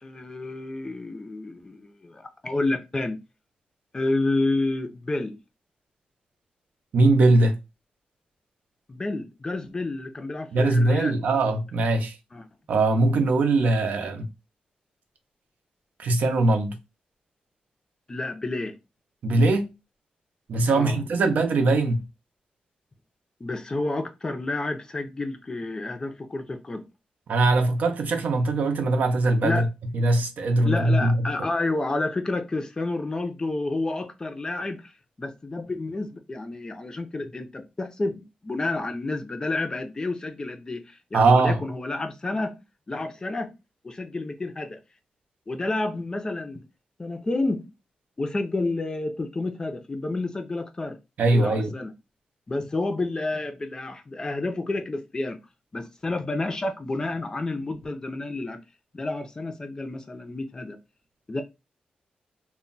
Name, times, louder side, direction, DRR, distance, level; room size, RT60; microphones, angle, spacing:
voice 1, 0.0-3.2 3.9-5.4 8.9-11.2 12.3-12.5 18.1-18.8 20.7-21.0 23.4-26.8 29.4-29.7 30.6-34.9 35.2-42.6 42.9-43.5 43.8-44.8 45.5-46.6 47.0-47.7 48.2-51.0 51.3-51.9 52.5-55.4 55.7-58.6 58.9-60.8 61.3-61.4, left 2 dB, 25° left, 0.4 m, -30 dB
voice 2, 6.9-7.6 10.5-12.2 12.7-14.3 16.0-16.8 19.2-19.7 20.5-22.0 27.3-29.7 29.9-31.3 41.1-41.6 51.2-51.7, right 2 dB, 70° right, 0.6 m, -21 dB
2.2 x 2.1 x 3.8 m
wide cardioid pair, 115°, 3 cm